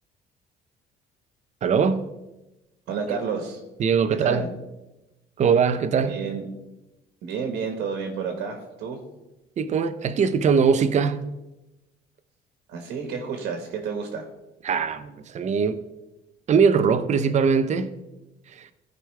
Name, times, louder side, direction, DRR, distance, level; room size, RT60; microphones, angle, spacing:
voice 1, 1.6-2.1 3.8-4.4 5.4-6.2 9.6-11.2 14.6-15.8 16.5-17.9 18.5-18.7, right 6 dB, 45° right, 0.7 m, -21 dB
voice 2, 2.9-3.6 4.2-4.5 6.1-6.4 7.2-9.0 12.7-14.3, right 6 dB, 80° right, 1.5 m, -30 dB
14.5 x 5.2 x 3.3 m
cardioid pair, 110°, 17 cm